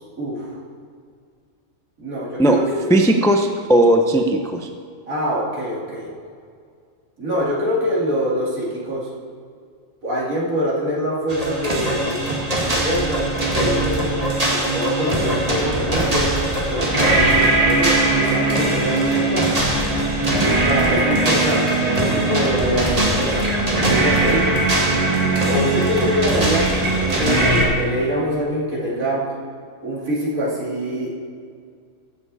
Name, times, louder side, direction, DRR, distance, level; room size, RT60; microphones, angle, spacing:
voice 1, 0.2-0.5 2.0-2.9 5.1-6.1 7.2-9.1 10.0-12.2 12.7-13.3 13.5-14.4 14.7-16.3 16.7-19.7 20.6-24.6 25.5-26.7 27.0-29.2 29.8-31.2, equal, 70° right, -5 dB, 3.0 m, -24 dB
voice 2, 2.9-4.7, right 1 dB, 5° left, 4 dB, 0.4 m, -16 dB
sound 1, 11.3-27.7, right 2 dB, 25° right, 1.9 m, -20 dB
15.5 x 7.3 x 4.2 m, 2.1 s
omnidirectional pair, 1.5 m